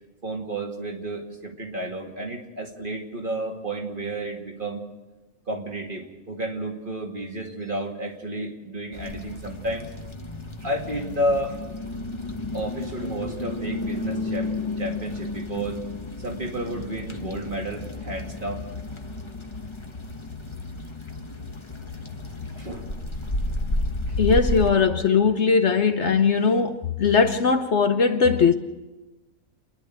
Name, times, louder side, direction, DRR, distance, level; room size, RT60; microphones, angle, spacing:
voice 1, 0.2-4.9 5.5-9.9 10.6-11.6 12.5-15.8 16.2-18.6 22.5-23.0 24.1-24.2, right 1 dB, 35° right, 2.4 m, -31 dB
sound 1, 8.9-24.7, left 2 dB, 20° left, 1.1 m, -32 dB
voice 2, 24.2-28.5, left 5 dB, 55° left, 1.1 m, -20 dB
30.0 x 11.0 x 7.9 m
omnidirectional pair, 1.5 m